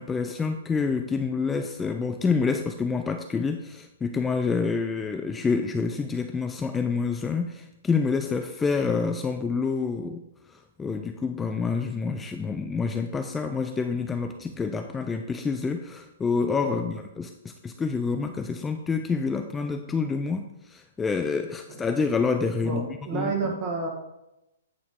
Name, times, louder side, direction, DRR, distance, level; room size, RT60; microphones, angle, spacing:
voice 1, 0.0-10.2 10.5-22.9 23.1-23.3, left 5 dB, 10° left, 6 dB, 0.3 m, -27 dB
voice 2, 22.6-23.9, right 4 dB, 30° right, 0 dB, 1.6 m, -30 dB
9.4 x 3.2 x 3.7 m, 0.92 s
hypercardioid pair, 135°, 0 cm